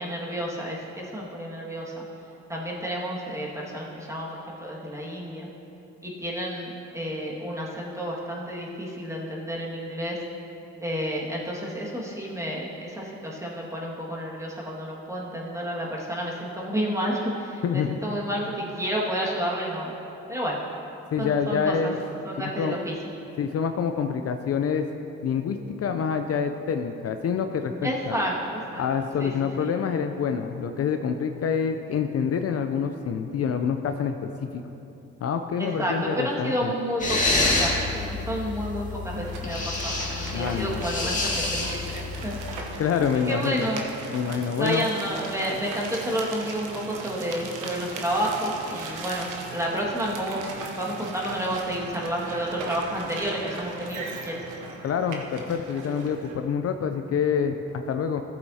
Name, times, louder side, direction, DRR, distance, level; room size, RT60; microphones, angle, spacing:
voice 1, 0.0-2.0 2.5-5.5 6.0-10.2 10.8-19.9 20.3-20.6 21.2-21.9 22.2-22.9 27.8-28.8 29.2-29.3 29.6-29.7 35.6-42.4 43.3-43.8 44.6-50.4 50.8-54.4, equal, 10° right, -4 dB, 1.9 m, -30 dB
voice 2, 17.6-18.0 21.1-22.0 22.4-22.7 23.4-24.9 25.2-28.1 28.8-34.6 35.2-36.7 40.3-40.8 42.8-43.7 44.1-44.9 54.8-58.2, left 6 dB, 50° left, 6 dB, 0.5 m, -27 dB
girl trying to cry quietly, 37.0-42.5, left 2 dB, 25° left, 1.7 m, -28 dB
Auto Rickshaw - Wheels on Gravel, 39.1-56.3, right 3 dB, 90° right, 1.1 m, -38 dB
14.5 x 8.1 x 2.8 m, 2.9 s
cardioid pair, 90°, 30 cm